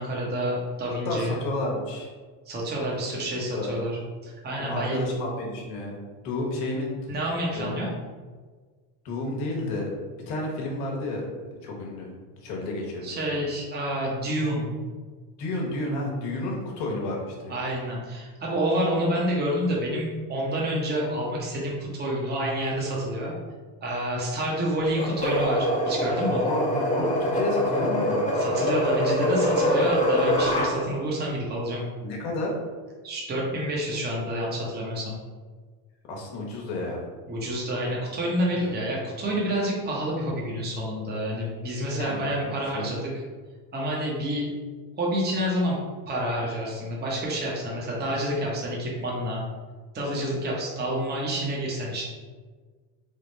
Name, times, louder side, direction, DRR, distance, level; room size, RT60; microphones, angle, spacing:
voice 1, 0.0-1.4 2.5-5.0 7.1-7.9 13.0-14.7 17.5-23.3 23.8-26.5 28.3-31.8 33.0-35.1 37.3-43.0 43.7-44.5 45.0-45.8 46.1-49.4 49.9-52.0, equal, 20° right, -4 dB, 0.8 m, -28 dB
voice 2, 1.0-2.1 3.1-3.2 3.5-3.8 4.6-6.0 6.2-6.9 7.5-7.8 9.0-9.9 10.3-12.1 12.4-13.4 15.4-17.5 26.3-28.3 32.0-32.5 36.1-37.1 38.6-38.8 41.9-42.3 42.7-42.8, left 2 dB, 85° left, -2 dB, 1.2 m, -31 dB
sound 1, 25.0-30.7, equal, 15° left, 0.7 m, -24 dB
3.5 x 2.3 x 4.0 m, 1.4 s
supercardioid pair, 115°, 48 cm